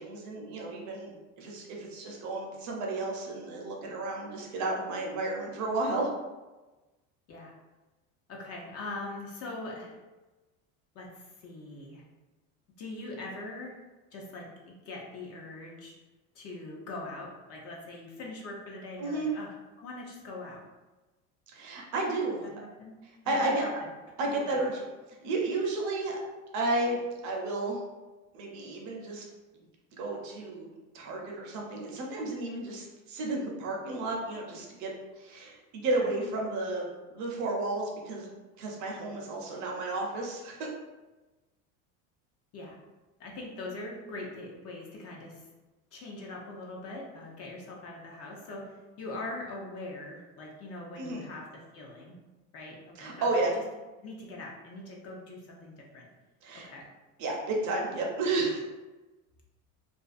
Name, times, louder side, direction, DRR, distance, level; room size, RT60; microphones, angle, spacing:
voice 1, 0.0-6.1 19.0-19.3 21.5-22.5 23.0-23.7 24.2-24.8 25.2-26.2 26.5-27.0 27.2-27.8 28.3-29.2 29.5-29.6 30.0-30.7 30.9-36.8 37.1-38.3 38.6-40.7 51.0-51.3 53.0-53.6 56.4-56.7 57.2-58.6, right 2 dB, 45° right, -1 dB, 0.6 m, -32 dB
voice 2, 8.3-10.0 10.9-12.0 12.8-13.7 14.1-15.9 16.3-20.6 22.4-23.0 23.2-23.7 24.5-24.6 42.5-42.8 43.2-45.5 45.9-52.2 52.5-53.3 54.0-56.1 56.5-56.8, left 2 dB, 40° left, -2 dB, 0.5 m, -42 dB
2.4 x 2.3 x 2.4 m, 1.2 s
supercardioid pair, 125°, 40 cm